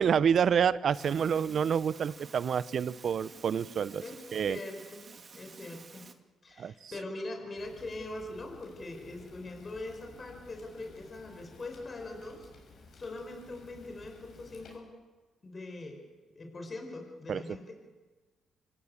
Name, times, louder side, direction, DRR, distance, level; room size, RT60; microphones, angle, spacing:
voice 1, 0.0-4.0 4.3-4.6 6.6-6.7 17.3-17.4, right 7 dB, 55° right, 18 dB, 0.8 m, -28 dB
sound 1, 0.9-6.1, right 5 dB, 40° right, 2.1 m, -51 dB
voice 2, 4.0-5.0 5.3-6.1 6.4-12.5 12.9-14.9 15.4-16.0 16.3-17.7, left 2 dB, 35° left, 3 dB, 5.4 m, -42 dB
Fire, 7.6-14.8, left 3 dB, 65° left, 7.3 m, -55 dB
26.0 x 16.5 x 8.6 m, 1.3 s
cardioid pair, 90°, 0 cm